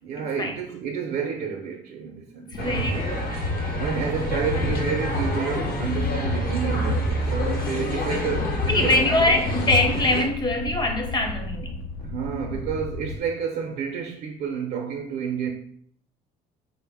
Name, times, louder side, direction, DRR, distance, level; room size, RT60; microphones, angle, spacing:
voice 1, 0.0-3.0 3.7-9.4 12.0-15.5, right 6 dB, 65° right, 0.4 m, -30 dB
sound 1, 2.5-13.2, left 2 dB, 80° left, 0.5 m, -35 dB
sound 2, 2.6-10.2, left 1 dB, 60° left, 0.9 m, -27 dB
voice 2, 2.6-3.2 8.7-11.8, left 2 dB, 25° left, 0.6 m, -23 dB
3.6 x 2.1 x 3.3 m
cardioid pair, 110°, 17 cm